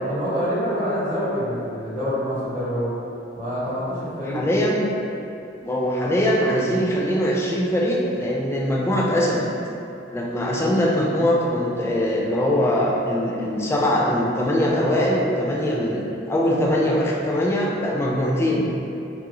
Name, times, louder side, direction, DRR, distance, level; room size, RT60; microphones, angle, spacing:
voice 1, 0.1-2.9 3.3-4.4, equal, 45° right, -10 dB, 0.7 m, -26 dB
voice 2, 4.3-4.9 5.6-9.5 10.1-18.7, equal, 15° left, -3 dB, 0.3 m, -22 dB
3.0 x 2.4 x 2.9 m, 2.7 s
head